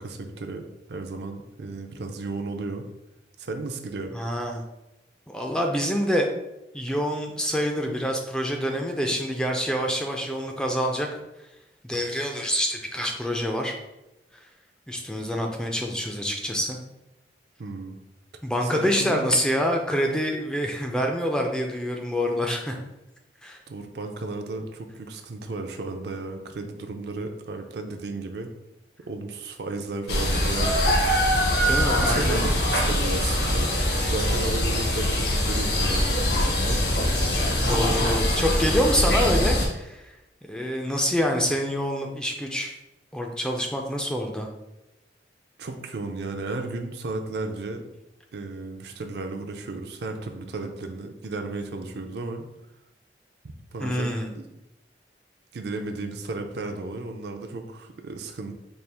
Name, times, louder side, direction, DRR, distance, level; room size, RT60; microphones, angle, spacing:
voice 1, 0.0-2.9 3.4-4.1 17.6-18.0 18.6-19.3 23.7-28.5 29.1-31.0 32.0-33.7 34.0-36.9 37.8-38.1 45.6-47.9 48.3-52.5 53.4-54.5 55.5-58.5, right 3 dB, 65° right, 5 dB, 0.4 m, -34 dB
voice 2, 4.1-4.6 5.3-6.3 6.7-11.1 11.8-13.8 14.9-16.8 18.4-22.8 23.4-23.6 31.7-32.4 37.5-40.2 40.5-42.8 43.1-44.5 53.8-54.3, equal, 5° left, 2 dB, 0.3 m, -26 dB
sound 1, 30.1-39.7, left 1 dB, 65° left, 0.8 m, -23 dB
4.3 x 2.3 x 3.4 m, 0.95 s
head